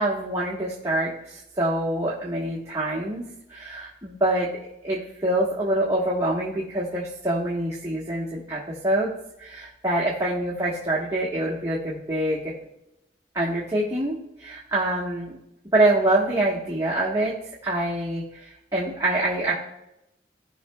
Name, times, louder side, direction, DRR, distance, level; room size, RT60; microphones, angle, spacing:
voice 1, 0.0-3.2 3.5-4.5 4.8-9.1 9.4-12.5 13.3-15.4 15.7-17.3 17.6-19.5, right 1 dB, 20° right, -6 dB, 1.3 m, -25 dB
17.0 x 5.7 x 2.3 m, 0.83 s
head